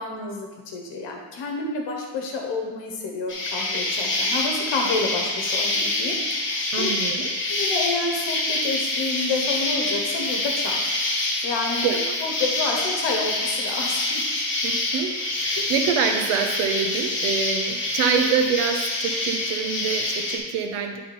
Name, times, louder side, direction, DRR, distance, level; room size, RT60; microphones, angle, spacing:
voice 1, 0.0-6.2 6.5-6.9 7.5-10.8 11.4-11.9 12.2-14.2 15.6-15.7, left 3 dB, 55° left, 1 dB, 1.2 m, -29 dB
Insect, 3.3-20.4, left 2 dB, 25° left, 1.2 m, -26 dB
voice 2, 6.7-7.3 11.8-12.2 14.6-21.0, right 6 dB, 85° right, 4 dB, 0.9 m, -26 dB
10.0 x 3.7 x 4.3 m, 1.3 s
cardioid pair, 175°, 50 cm